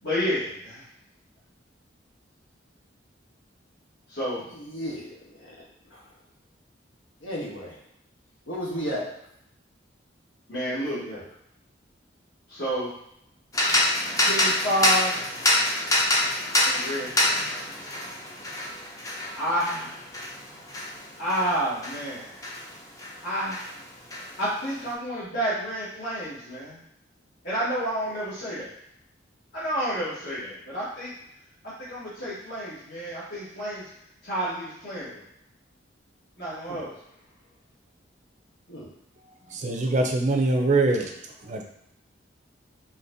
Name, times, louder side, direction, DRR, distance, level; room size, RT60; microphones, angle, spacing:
voice 1, 0.0-0.8 4.1-4.5 10.5-11.0 12.5-12.9 14.2-15.1 16.6-17.5 17.8-18.1 19.3-20.0 21.2-22.4 23.2-23.7 24.4-26.8 27.4-28.7 29.5-31.1 31.9-33.9 34.2-35.2 36.4-36.9, equal, 60° left, -12 dB, 1.4 m, -30 dB
voice 2, 4.5-5.5 5.9-6.0 7.2-7.8 8.5-9.0 10.7-11.2 36.7-36.8 38.7-38.9, equal, 90° left, -4 dB, 1.2 m, -34 dB
sound 1, 13.5-23.2 23.5-24.8, left 1 dB, 15° left, 0.5 m, -26 dB
voice 3, 39.5-41.1 41.4-41.6, right 2 dB, 40° right, 3 dB, 0.5 m, -23 dB
4.1 x 2.9 x 2.6 m, 0.77 s
head